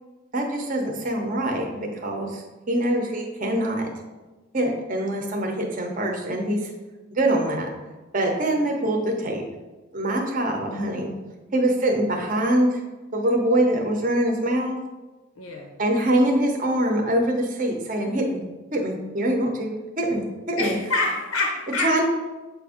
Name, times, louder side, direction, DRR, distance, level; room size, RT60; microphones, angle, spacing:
voice 1, 0.3-3.9 4.5-6.7 7.1-7.7 8.1-9.4 9.9-11.1 11.5-12.8 13.1-14.8 15.8-18.4 18.7-20.8 21.8-22.0, right 1 dB, 40° right, 1 dB, 0.7 m, -24 dB
voice 2, 15.4-15.7 20.6-22.0, left 2 dB, 75° left, 1 dB, 0.7 m, -26 dB
7.4 x 2.5 x 4.9 m, 1.2 s
head